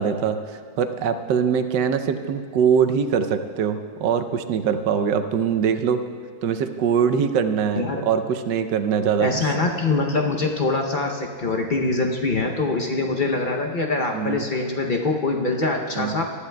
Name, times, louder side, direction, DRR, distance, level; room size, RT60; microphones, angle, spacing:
voice 1, 0.0-6.0 6.4-9.3 14.1-14.4 16.0-16.2, right 7 dB, 75° right, 8 dB, 1.3 m, -22 dB
voice 2, 9.2-16.2, left 3 dB, 60° left, 1 dB, 0.5 m, -24 dB
19.5 x 13.0 x 2.2 m, 2.1 s
omnidirectional pair, 1.9 m